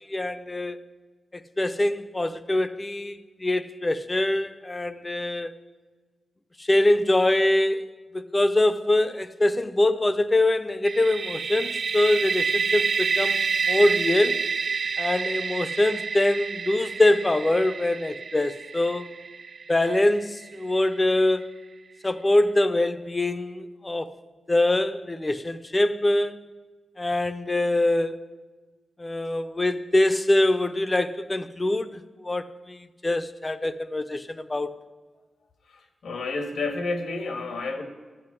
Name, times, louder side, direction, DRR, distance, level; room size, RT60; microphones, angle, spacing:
voice 1, 0.1-0.8 1.3-5.5 6.6-7.8 8.1-14.4 15.0-19.1 19.7-21.4 22.0-24.1 24.5-26.4 27.0-28.2 29.0-34.7, left 1 dB, 20° left, 0.5 m, -24 dB
sound 1, 10.8-20.5, right 5 dB, 50° right, 0.4 m, -28 dB
voice 2, 35.7-37.8, left 3 dB, 80° left, 1.7 m, -30 dB
13.0 x 7.9 x 9.8 m
wide cardioid pair, 160°, 0 cm